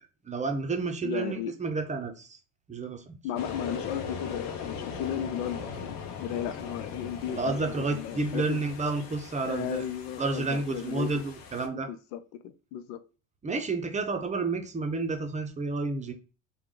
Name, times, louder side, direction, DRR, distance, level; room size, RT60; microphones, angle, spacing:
voice 1, 0.3-2.3 2.7-3.2 7.3-9.8 10.2-11.9 13.4-16.1, right 3 dB, 20° right, 0.6 m, -30 dB
voice 2, 1.0-1.5 3.2-8.6 9.4-11.2 11.7-13.0, left 10 dB, 90° left, 0.5 m, -35 dB
sound 1, 3.4-11.7, left 6 dB, 65° left, 0.8 m, -40 dB
3.5 x 2.3 x 3.7 m
cardioid pair, 110°, 37 cm